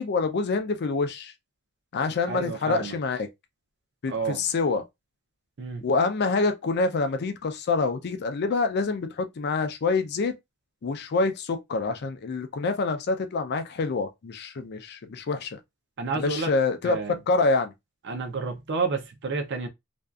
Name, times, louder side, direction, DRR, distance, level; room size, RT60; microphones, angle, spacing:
voice 1, 0.0-1.3 1.9-3.3 4.0-4.8 5.8-10.3 10.8-15.6 16.2-17.0 17.3-17.7, left 3 dB, 50° left, 0.4 m, -26 dB
voice 2, 2.3-3.0 4.1-4.4 5.6-5.9 16.0-16.5 16.8-17.2 18.0-19.7, right 4 dB, 55° right, 0.5 m, -30 dB
2.6 x 2.3 x 2.2 m
head